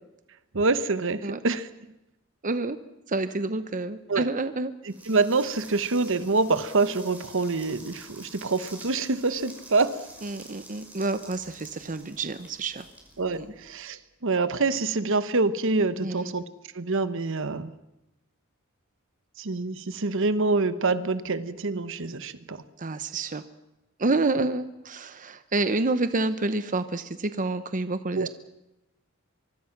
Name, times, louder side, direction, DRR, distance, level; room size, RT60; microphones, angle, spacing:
voice 1, 0.5-1.7 4.1-4.3 5.1-10.0 13.2-16.4 16.7-17.7 19.4-22.6 24.4-24.5 28.1-28.3, right 3 dB, 65° right, 13 dB, 1.1 m, -26 dB
voice 2, 2.4-2.8 3.1-4.7 10.2-12.9 13.3-13.5 16.0-16.3 22.8-23.4 24.0-28.3, right 2 dB, 40° right, 11 dB, 0.9 m, -28 dB
sound 1, 4.9-13.9, right 2 dB, 10° right, 5.6 m, -48 dB
24.0 x 23.5 x 6.0 m, 0.92 s
head